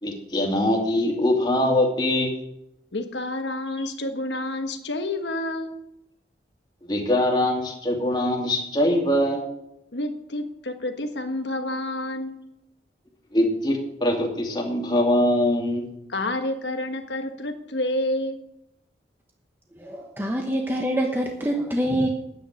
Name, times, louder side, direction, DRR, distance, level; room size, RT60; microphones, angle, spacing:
voice 1, 0.0-2.3 6.8-9.4 13.3-15.9, left 1 dB, 25° left, 0 dB, 2.5 m, -22 dB
voice 2, 2.9-5.8 9.9-12.4 16.1-18.4, left 1 dB, 90° left, 6 dB, 1.5 m, -29 dB
voice 3, 19.7-22.1, equal, 15° right, 1 dB, 1.1 m, -25 dB
10.0 x 9.5 x 6.5 m, 0.82 s
head